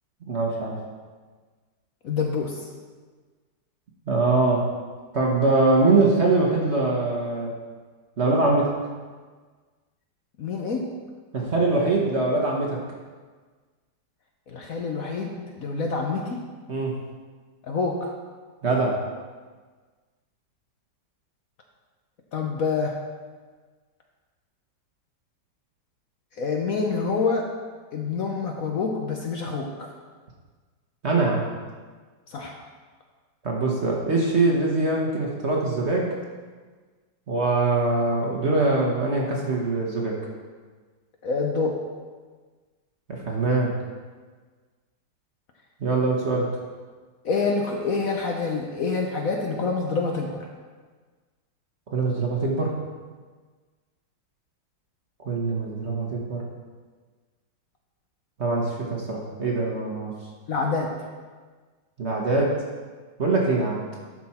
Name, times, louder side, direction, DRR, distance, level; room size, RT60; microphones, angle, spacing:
voice 1, 0.2-0.8 4.1-4.6 5.1-7.5 8.2-8.7 11.3-12.8 16.7-17.0 18.6-19.0 31.0-31.4 33.4-36.1 37.3-40.2 43.1-43.7 45.8-46.5 51.9-52.7 55.2-56.4 58.4-60.1 62.0-62.6 63.2-63.8, right 3 dB, 45° right, -1 dB, 1.2 m, -23 dB
voice 2, 2.0-2.7 10.4-10.8 14.5-16.4 17.7-18.1 22.3-23.0 26.4-27.5 27.9-29.9 32.3-32.6 41.2-41.8 47.2-50.5 60.5-61.1, left 4 dB, 60° left, 1 dB, 1.0 m, -27 dB
10.5 x 6.1 x 4.3 m, 1.4 s
omnidirectional pair, 2.0 m